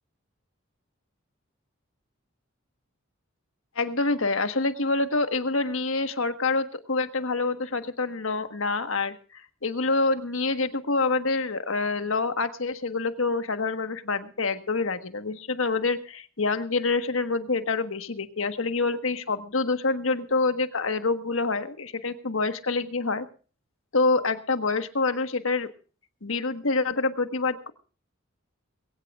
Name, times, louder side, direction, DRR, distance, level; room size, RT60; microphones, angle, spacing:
voice 1, 3.7-23.3 23.9-25.7 26.2-27.7, left 3 dB, 75° left, 9 dB, 1.4 m, -26 dB
22.0 x 17.0 x 2.4 m, 0.39 s
head